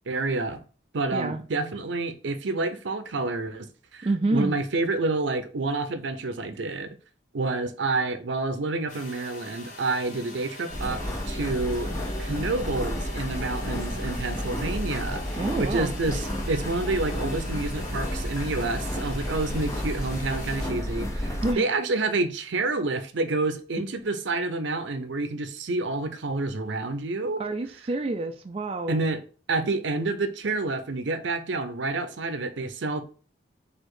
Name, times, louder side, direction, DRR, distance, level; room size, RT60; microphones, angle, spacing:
voice 1, 0.1-0.6 0.9-3.7 3.9-6.9 7.3-11.9 12.2-27.4 28.9-29.2 29.5-33.0, right 3 dB, 80° right, 0.6 m, -28 dB
voice 2, 1.1-1.4 4.0-4.6 15.4-15.9 21.4-21.7 27.4-29.0, right 2 dB, 30° right, 0.3 m, -28 dB
sound 1, 8.9-20.7, left 2 dB, 45° left, 1.3 m, -43 dB
sound 2, 10.7-21.5, equal, 15° left, 0.6 m, -31 dB
4.2 x 2.6 x 4.7 m
head